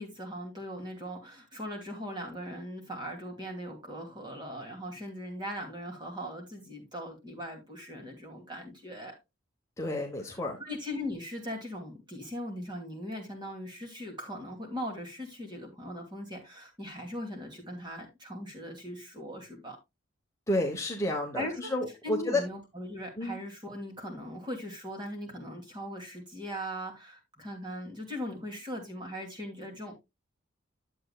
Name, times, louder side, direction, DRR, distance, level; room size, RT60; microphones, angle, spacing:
voice 1, 0.0-9.2 10.2-19.8 21.3-21.7 22.0-29.9, equal, 20° right, 2.6 m, -39 dB
voice 2, 9.8-10.6 20.5-22.4 23.2-23.4, left 1 dB, 15° left, 1.1 m, -30 dB
10.5 x 7.8 x 2.3 m
head